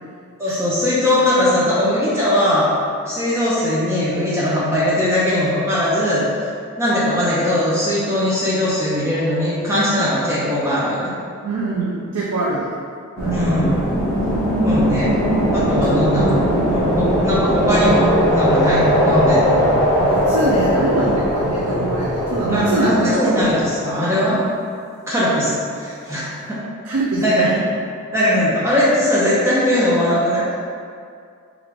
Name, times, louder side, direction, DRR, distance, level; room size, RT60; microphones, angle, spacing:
voice 1, 0.4-2.7 3.0-6.2 6.8-11.1 13.3-13.9 14.6-15.1 15.5-19.6 22.5-24.4 25.1-26.6 27.2-27.5 28.1-30.6, left 1 dB, 10° right, -8 dB, 0.5 m, -19 dB
voice 2, 11.4-12.7 13.2-13.5 15.6-15.7 20.0-23.4 26.9-27.7, right 2 dB, 90° right, -5 dB, 0.4 m, -24 dB
sound 1, 13.2-23.7, equal, 15° left, 0.9 m, -19 dB
3.2 x 2.4 x 3.3 m, 2.3 s
head